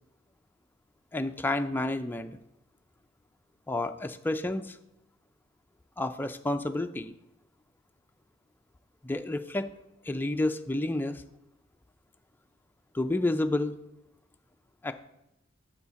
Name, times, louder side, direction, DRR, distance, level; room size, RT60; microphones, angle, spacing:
voice 1, 1.1-2.4 3.7-4.8 6.0-7.1 9.0-9.7 10.1-11.2 12.9-13.7 14.8-14.9, left 2 dB, 10° left, 7 dB, 0.3 m, -30 dB
7.1 x 5.7 x 4.1 m, 0.85 s
head